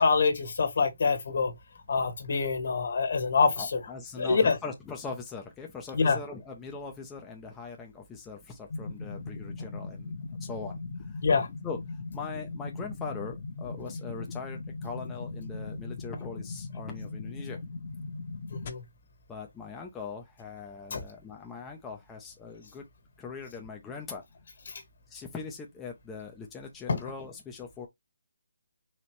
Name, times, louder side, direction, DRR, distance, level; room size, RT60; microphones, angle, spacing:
voice 1, 0.0-1.5 1.9-3.8 4.2-4.6 5.9-6.2 11.2-11.5 18.5-18.8 20.9-21.0 24.7-24.8 26.9-27.0, left 4 dB, 60° left, 1.5 m, -25 dB
voice 2, 3.6-10.8 11.6-11.8 12.1-17.6 19.3-22.8 23.2-24.2 25.1-27.9, left 5 dB, 10° left, 0.5 m, -41 dB
sound 1, 8.7-18.7, left 3 dB, 40° left, 0.9 m, -39 dB
4.2 x 2.9 x 3.1 m
hypercardioid pair, 165°, 0 cm